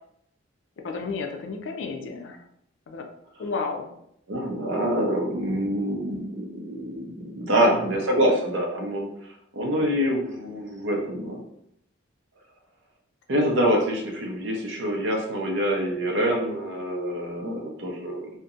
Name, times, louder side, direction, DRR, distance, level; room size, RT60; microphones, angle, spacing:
voice 1, 0.8-2.4 2.9-3.0 3.4-3.9 7.5-7.9, left 4 dB, 65° left, 4 dB, 0.4 m, -32 dB
voice 2, 4.3-9.1 9.5-11.4 13.3-18.3, right 1 dB, 65° right, 0 dB, 0.6 m, -25 dB
2.7 x 2.1 x 2.4 m, 0.74 s
head